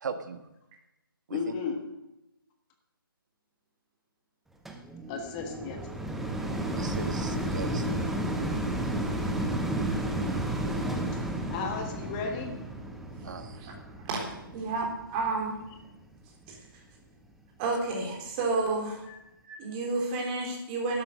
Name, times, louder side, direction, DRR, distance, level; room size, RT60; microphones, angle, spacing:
voice 1, 0.0-0.4 1.3-1.5 6.7-7.9 13.2-13.6, right 5 dB, 50° right, 8 dB, 1.6 m, -38 dB
voice 2, 1.3-1.8 5.1-5.8 11.5-12.5 19.1-19.2, left 5 dB, 20° left, 4 dB, 1.5 m, -34 dB
sound 1, 4.7-15.9 16.5-16.6, right 1 dB, ahead, 0.7 m, -32 dB
voice 3, 14.1-15.6 16.5-16.6 17.6-19.1 19.4-21.0, right 3 dB, 20° right, 0 dB, 3.4 m, -31 dB
11.5 x 11.5 x 6.5 m, 0.91 s
figure-of-eight pair, 155°, 12 cm